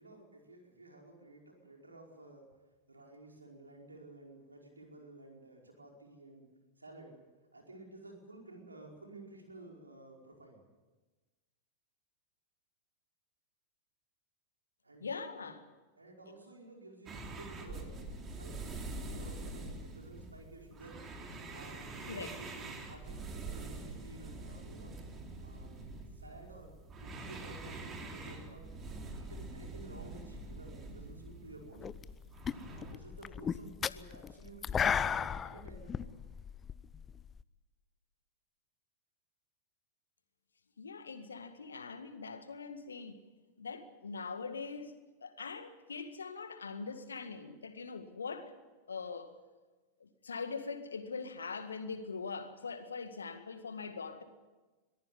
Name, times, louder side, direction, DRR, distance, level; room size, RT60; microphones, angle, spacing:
voice 1, 0.0-2.4 2.9-6.5 6.8-7.2 7.5-10.6 14.8-15.1 15.3-15.5 16.0-18.7 19.0-21.0 21.5-25.0 25.4-25.8 26.1-28.7 29.1-31.9 32.7-36.2, right 2 dB, 80° right, 5.0 m, -53 dB
voice 2, 15.0-15.6 22.1-22.4 40.8-43.2 43.6-48.5 48.9-49.4 50.0-54.2, left 4 dB, 75° left, 1.8 m, -42 dB
sound 1, 17.1-32.9, right 2 dB, 25° right, 3.3 m, -45 dB
sound 2, 31.8-32.2 32.4-37.4, left 7 dB, 20° left, 0.6 m, -34 dB
22.5 x 14.5 x 9.6 m
figure-of-eight pair, 90°, 0 cm